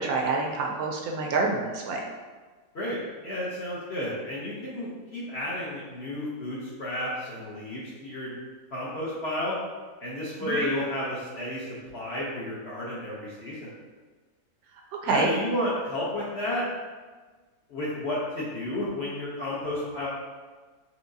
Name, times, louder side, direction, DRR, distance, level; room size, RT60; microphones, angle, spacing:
voice 1, 0.0-2.0 10.4-10.5 14.9-15.3, right 3 dB, 70° right, 1 dB, 1.0 m, -27 dB
voice 2, 3.2-8.3 8.7-9.6 10.0-13.7 15.1-16.7 17.7-20.1, left 1 dB, 55° left, -6 dB, 0.8 m, -32 dB
4.6 x 3.3 x 2.6 m, 1.4 s
omnidirectional pair, 1.7 m